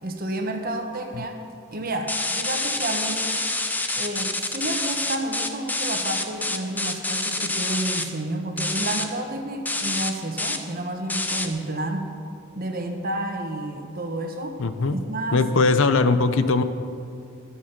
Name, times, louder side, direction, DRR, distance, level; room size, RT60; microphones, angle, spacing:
voice 1, 0.0-1.4 1.7-3.4 3.9-12.2 12.5-14.6 14.9-15.4, right 1 dB, 40° right, 4 dB, 1.3 m, -30 dB
sound 1, 2.1-8.0 8.6-9.0 9.6-10.1 10.4-10.6 11.1-11.5, left 2 dB, 10° left, 0.6 m, -27 dB
voice 2, 14.6-15.0 15.3-16.6, left 3 dB, 60° left, 11 dB, 0.6 m, -20 dB
21.5 x 7.4 x 5.9 m, 2.4 s
head